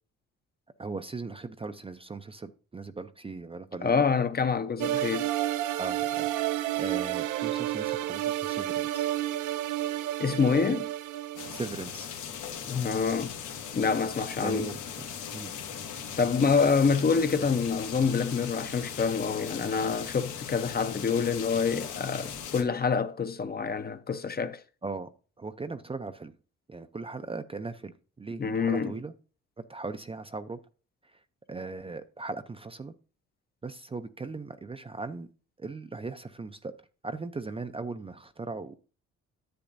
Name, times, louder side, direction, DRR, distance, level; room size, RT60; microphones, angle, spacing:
voice 1, 0.8-4.0 5.8-9.1 11.5-12.1 14.4-15.5 24.8-25.1 25.4-26.4 26.7-29.1 29.6-30.6 31.0-31.2 31.5-32.9 33.6-35.3 35.6-36.7 37.0-38.8, right 3 dB, 20° right, 0.5 m, -38 dB
voice 2, 3.8-5.3 10.2-10.9 12.7-13.3 13.7-14.7 16.2-24.6 28.4-28.9, left 5 dB, 30° left, 0.7 m, -26 dB
sound 1, 4.8-11.7, right 14 dB, 90° right, 0.6 m, -30 dB
sound 2, 11.4-22.6, left 7 dB, 80° left, 1.5 m, -39 dB
10.0 x 7.8 x 2.6 m
cardioid pair, 90°, 30 cm